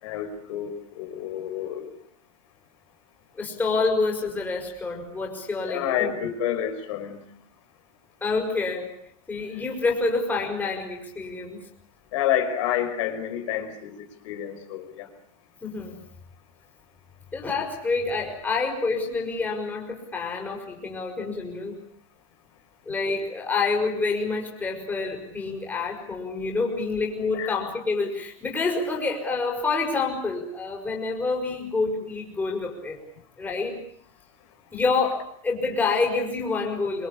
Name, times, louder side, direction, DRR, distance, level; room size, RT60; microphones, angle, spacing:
voice 1, 0.0-1.9 5.7-7.2 12.1-15.1 27.3-27.5, left 10 dB, 65° left, 6 dB, 5.2 m, -29 dB
voice 2, 3.4-6.3 8.2-8.9 9.3-11.6 15.6-16.0 17.3-21.7 22.9-33.0 33.4-33.8 34.7-37.1, left 3 dB, 10° left, 0 dB, 5.7 m, -27 dB
26.5 x 26.5 x 8.5 m, 0.66 s
supercardioid pair, 175°, 17 cm